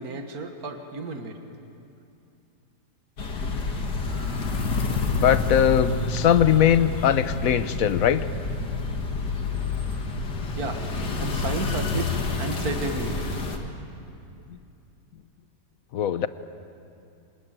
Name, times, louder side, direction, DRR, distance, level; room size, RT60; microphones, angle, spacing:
voice 1, 0.0-1.3 10.6-13.2, right 3 dB, 65° right, 5 dB, 2.2 m, -32 dB
sound 1, 3.2-13.6, left 3 dB, 85° left, 2.5 m, -28 dB
voice 2, 5.0-8.2 15.9-16.3, left 9 dB, 65° left, 13 dB, 1.2 m, -21 dB
26.0 x 20.0 x 9.1 m, 2.6 s
omnidirectional pair, 1.8 m